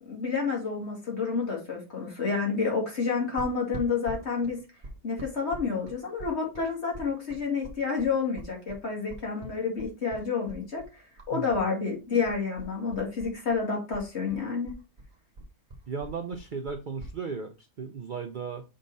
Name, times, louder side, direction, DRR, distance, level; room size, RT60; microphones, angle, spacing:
voice 1, 0.0-4.6 5.0-14.7, left 5 dB, 45° left, -1 dB, 2.5 m, -29 dB
sound 1, 3.4-11.7 11.9-13.6 13.9-17.2, right 1 dB, 35° right, 1.3 m, -43 dB
voice 2, 11.3-11.6 15.9-18.6, right 5 dB, 55° right, 6 dB, 0.5 m, -36 dB
6.3 x 3.8 x 4.1 m, 0.29 s
omnidirectional pair, 1.5 m